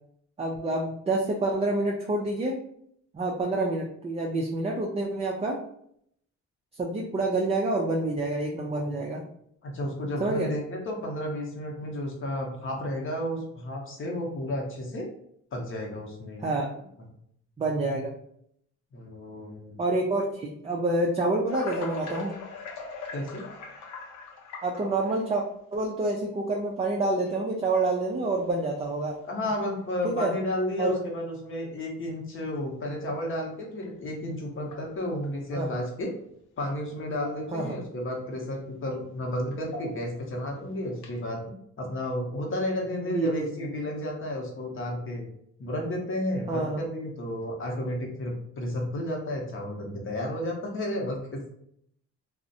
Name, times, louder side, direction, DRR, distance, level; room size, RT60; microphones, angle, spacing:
voice 1, 0.4-2.6 3.1-5.6 6.8-9.2 10.2-10.5 16.4-16.7 17.6-18.1 19.8-22.3 24.6-25.4 25.7-29.1 30.0-30.3 30.8-30.9 35.5-35.8 37.5-37.7 43.1-43.5 46.5-46.8, right 2 dB, 20° right, -1 dB, 0.3 m, -27 dB
voice 2, 9.6-15.1 15.5-16.4 18.9-19.8 23.1-23.4 29.2-36.1 36.6-45.2 45.6-51.4, left 1 dB, 45° left, 0 dB, 0.8 m, -32 dB
sound 1, 21.5-25.3 26.1-26.2 27.3-27.4 28.1-28.4 28.8-28.9 29.4-29.6 30.9-31.0 33.8-33.9 34.6-35.3 36.7-36.8 37.1-37.7 38.1-38.2 39.5-40.2 40.9-41.3, left 3 dB, 70° left, 0.6 m, -41 dB
2.4 x 2.0 x 2.6 m, 0.69 s
cardioid pair, 90°, 30 cm